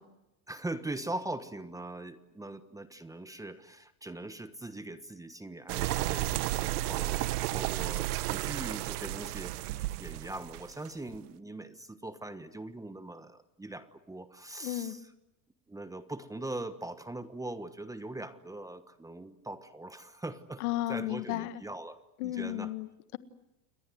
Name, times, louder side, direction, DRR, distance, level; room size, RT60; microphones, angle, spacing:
voice 1, 0.5-15.1 15.7-22.7, right 2 dB, 5° right, 11 dB, 1.3 m, -41 dB
sound 1, 5.7-11.2, right 16 dB, 85° right, 1.2 m, -33 dB
voice 2, 14.6-15.0 20.6-21.6 22.2-23.2, left 15 dB, 75° left, 12 dB, 1.7 m, -34 dB
29.0 x 21.5 x 7.9 m, 0.91 s
supercardioid pair, 125°, 45 cm